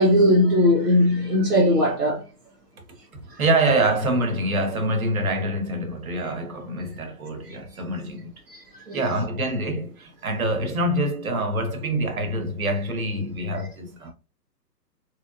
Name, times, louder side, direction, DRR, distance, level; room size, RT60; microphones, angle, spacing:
voice 1, 0.0-2.2 3.3-3.4 7.5-7.6 8.5-9.0, left 1 dB, 70° right, 1.1 m, -19 dB
voice 2, 3.4-8.3 8.9-14.1, right 1 dB, 55° right, 1.4 m, -25 dB
4.0 x 3.1 x 2.5 m
figure-of-eight pair, 130°, 50 cm